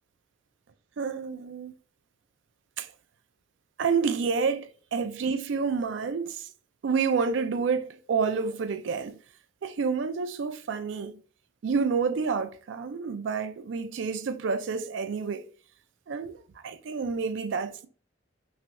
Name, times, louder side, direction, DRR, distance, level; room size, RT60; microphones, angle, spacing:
voice 1, 1.0-1.7 2.8-2.9 3.8-4.7 4.9-6.5 6.8-9.2 9.6-11.2 11.6-15.5 16.1-17.9, right 5 dB, 65° right, 0.4 m, -29 dB
3.1 x 2.7 x 2.5 m
head